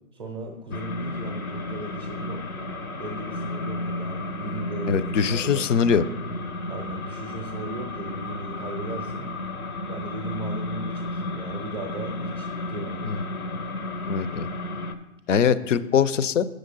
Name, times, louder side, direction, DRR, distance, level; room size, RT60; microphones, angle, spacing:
voice 1, 0.1-2.4 3.0-5.7 6.7-9.3 9.9-13.1, right 2 dB, 20° right, 0 dB, 0.6 m, -37 dB
sound 1, 0.7-14.9, left 2 dB, 85° left, 0.9 m, -33 dB
voice 2, 4.9-6.0 13.0-13.2 14.1-14.5 15.3-16.5, left 7 dB, 60° left, 15 dB, 0.6 m, -22 dB
7.8 x 6.5 x 3.9 m, 1.0 s
hypercardioid pair, 140°, 42 cm